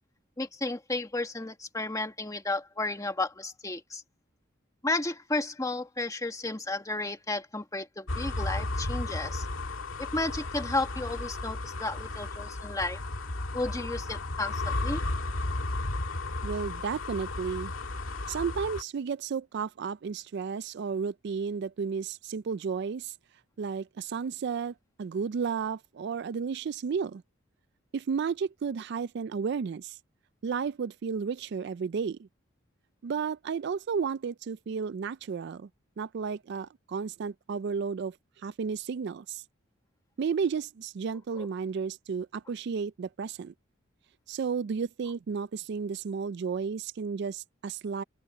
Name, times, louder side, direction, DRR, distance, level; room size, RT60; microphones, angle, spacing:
voice 1, 0.4-4.0 4.8-9.5 10.0-13.0 13.5-15.0 41.3-41.5, left 2 dB, 15° left, 1.5 m, -33 dB
sound 1, 8.1-18.8, left 2 dB, 85° left, 2.1 m, -34 dB
voice 2, 16.4-17.7 18.3-23.1 23.6-27.2 27.9-30.0 30.4-32.3 33.0-35.7 36.0-38.1 38.4-39.4 40.2-43.5 44.3-48.0, right 6 dB, 55° right, 0.4 m, -33 dB
open air
head